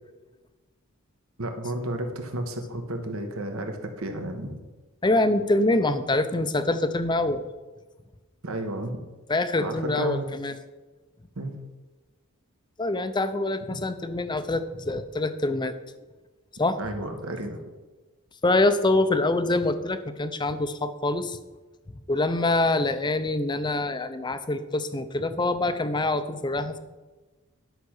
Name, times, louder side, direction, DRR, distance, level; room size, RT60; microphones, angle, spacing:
voice 1, 1.4-4.6 8.4-8.9 9.6-10.4 11.3-11.6 13.8-13.9 16.8-17.6, right 1 dB, 65° right, 5 dB, 1.4 m, -32 dB
voice 2, 5.0-7.4 9.3-10.5 12.8-15.7 16.6-16.8 18.4-21.4 22.1-26.8, left 2 dB, 20° left, 11 dB, 0.6 m, -25 dB
11.0 x 5.9 x 6.5 m, 1.2 s
head